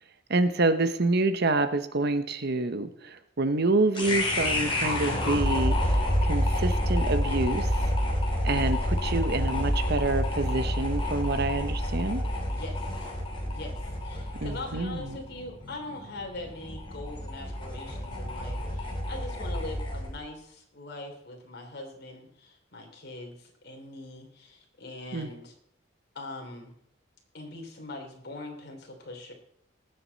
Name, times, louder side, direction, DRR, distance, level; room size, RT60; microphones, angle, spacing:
voice 1, 0.3-7.9 8.4-12.2 14.4-15.2 25.1-25.3, right 2 dB, 60° right, 11 dB, 1.0 m, -27 dB
sound 1, 3.9-20.2, left 1 dB, 30° left, 3.0 m, -29 dB
voice 2, 12.2-13.1 13.4-25.6 26.1-26.7 27.3-29.3, left 2 dB, 60° left, 2 dB, 3.2 m, -42 dB
19.5 x 7.9 x 4.1 m, 0.72 s
head